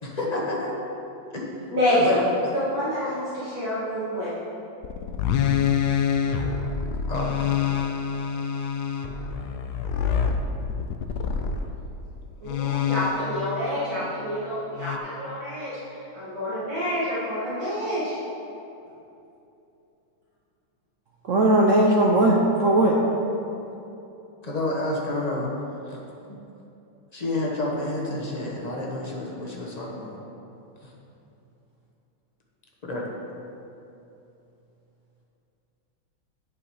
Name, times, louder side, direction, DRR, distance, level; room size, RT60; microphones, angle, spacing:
voice 1, 0.0-0.8 1.3-1.6 1.9-2.2 7.1-7.8 24.4-25.5 25.9-26.0 26.3-26.4 27.1-30.2 30.8-30.9 32.8-33.1, left 2 dB, 25° left, -3 dB, 0.9 m, -30 dB
voice 2, 1.7-2.2 2.5-4.3 12.4-15.7 16.1-18.1, left 1 dB, 45° right, -11 dB, 2.3 m, -27 dB
sound 1, 4.8-11.7 12.5-13.5 14.8-15.0, left 7 dB, 70° left, 1.0 m, -26 dB
voice 3, 21.2-22.9, right 1 dB, 70° right, -2 dB, 0.7 m, -18 dB
8.8 x 7.0 x 4.8 m, 2.8 s
omnidirectional pair, 2.2 m